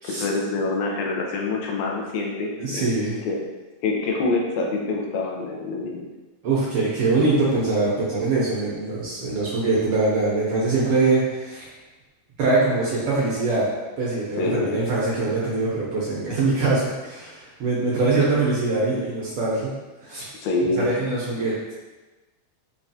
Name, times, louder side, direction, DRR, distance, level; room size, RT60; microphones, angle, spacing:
voice 1, 0.0-2.9 3.3-3.4 3.8-6.1 14.4-14.8 20.4-20.9, left 3 dB, 75° left, -1 dB, 1.8 m, -25 dB
voice 2, 2.6-3.1 6.4-11.7 12.4-13.7 14.0-19.7 20.0-20.2 20.6-21.7, right 3 dB, 70° right, -7 dB, 1.4 m, -23 dB
6.0 x 2.4 x 2.7 m, 1.2 s
omnidirectional pair, 3.4 m